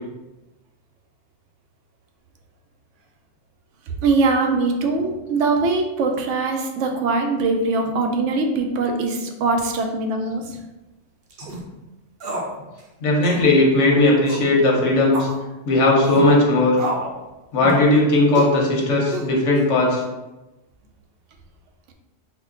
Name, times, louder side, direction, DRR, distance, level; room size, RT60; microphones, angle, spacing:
voice 1, 4.0-10.6, right 3 dB, 85° right, 4 dB, 0.9 m, -22 dB
sound 1, 11.3-11.6 12.2-12.5 12.8-12.9 13.2-13.5 14.3-14.5 15.1-15.4 16.0-16.3 16.8-17.2 17.6-17.9 18.3-18.5 19.1-19.6, right 1 dB, 60° right, 0.8 m, -29 dB
voice 2, 13.0-15.3 15.6-16.8 17.5-20.0, left 2 dB, 80° left, -2 dB, 1.2 m, -17 dB
3.6 x 2.1 x 3.6 m, 1.0 s
omnidirectional pair, 1.2 m